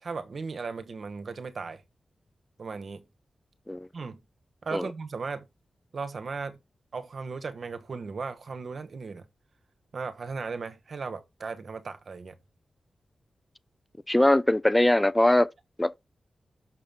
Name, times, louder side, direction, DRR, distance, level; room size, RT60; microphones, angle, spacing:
voice 1, 0.0-1.8 2.6-3.0 3.9-4.2 4.6-5.5 5.9-6.6 6.9-9.3 9.9-12.4, right 4 dB, 60° right, 1.1 m, -36 dB
voice 2, 14.1-15.5 15.8-15.9, left 1 dB, 10° left, 0.4 m, -21 dB
6.1 x 5.6 x 3.6 m
wide cardioid pair, 85°, 0 cm